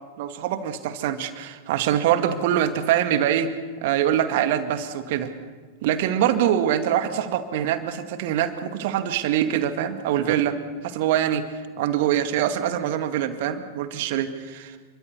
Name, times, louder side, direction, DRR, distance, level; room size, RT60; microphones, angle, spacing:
voice 1, 0.2-3.5 3.8-5.3 5.8-10.6 10.8-11.4 11.8-14.8, right 10 dB, 50° right, 8 dB, 2.1 m, -24 dB
29.5 x 23.5 x 6.7 m, 1.5 s
figure-of-eight pair, 90°, 0 cm